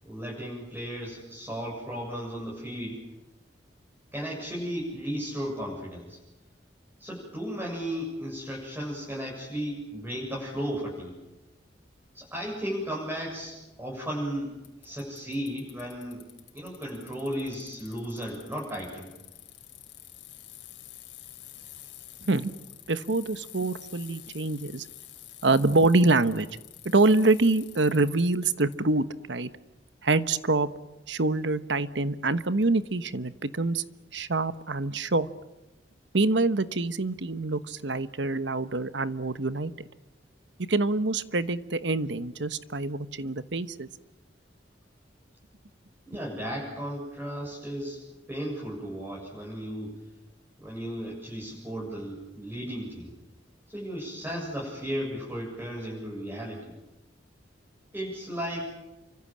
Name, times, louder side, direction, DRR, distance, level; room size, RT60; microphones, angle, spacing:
voice 1, 0.0-3.0 4.1-6.2 7.0-11.2 12.1-14.6 14.8-16.2 16.5-19.1 46.1-48.0 48.3-50.0 50.6-53.1 53.7-56.7 57.9-58.7, equal, 10° right, -4 dB, 7.8 m, -35 dB
Bicycle, 14.6-28.8, left 14 dB, 85° left, 4.0 m, -48 dB
voice 2, 22.2-22.6 22.9-24.8 25.4-26.5 26.8-29.5 30.0-30.7 31.1-33.8 34.1-35.3 36.1-39.7 40.7-43.9, right 2 dB, 80° right, 13 dB, 1.2 m, -25 dB
29.0 x 25.0 x 7.6 m, 1.0 s
head